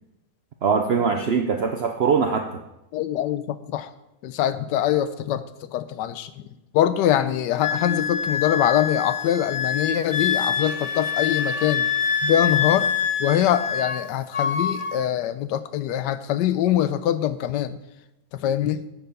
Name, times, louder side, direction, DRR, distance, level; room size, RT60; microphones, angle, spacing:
voice 1, 0.6-2.6, right 5 dB, 70° right, 5 dB, 0.6 m, -22 dB
voice 2, 2.9-3.9 4.2-6.4 6.7-11.9 12.2-12.9 13.2-17.8 18.3-18.8, left 11 dB, 80° left, 13 dB, 1.2 m, -23 dB
Wind instrument woodwind instrument, 7.6-14.0 14.3-15.0, left 7 dB, 50° left, 0.9 m, -25 dB
9.0 x 6.8 x 5.4 m, 0.91 s
omnidirectional pair, 1.8 m